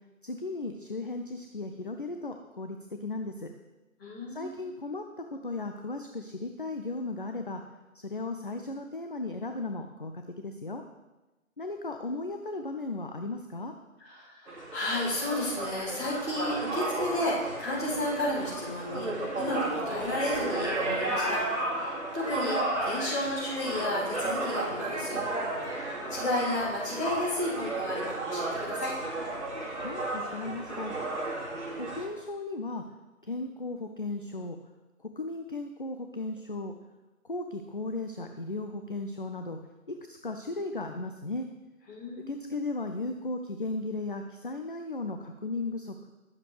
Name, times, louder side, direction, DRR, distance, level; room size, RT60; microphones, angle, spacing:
voice 1, 0.2-3.5 4.3-7.6 8.0-10.8 11.6-13.7 29.8-30.9 31.8-32.8 33.2-34.6 35.2-36.7 37.3-39.6 39.9-41.5 42.3-46.1, left 2 dB, 40° left, 5 dB, 0.5 m, -36 dB
voice 2, 4.0-4.6 14.0-25.2 25.7-28.9 41.9-42.5, left 1 dB, 15° left, -10 dB, 2.6 m, -33 dB
sound 1, 14.5-32.1, right 2 dB, 55° right, 2.4 m, -33 dB
20.0 x 7.4 x 3.3 m, 1.1 s
figure-of-eight pair, 155°, 41 cm